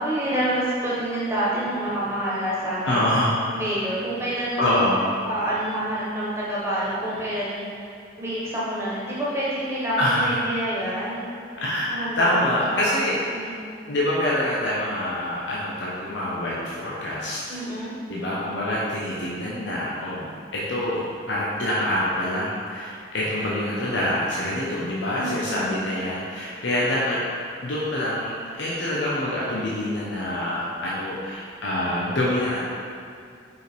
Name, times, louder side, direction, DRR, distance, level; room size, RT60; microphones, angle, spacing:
voice 1, 0.0-3.0 3.5-4.8 5.2-7.9 8.2-11.4 11.8-12.9 13.3-13.6 17.5-18.0 25.1-25.8, right 1 dB, 15° right, -8 dB, 1.4 m, -28 dB
voice 2, 2.8-3.3 4.6-5.1 10.0-10.6 11.6-13.2 13.9-17.6 18.1-27.2 27.6-32.6, left 1 dB, 85° left, -6 dB, 0.9 m, -26 dB
5.4 x 5.1 x 4.6 m, 2.4 s
head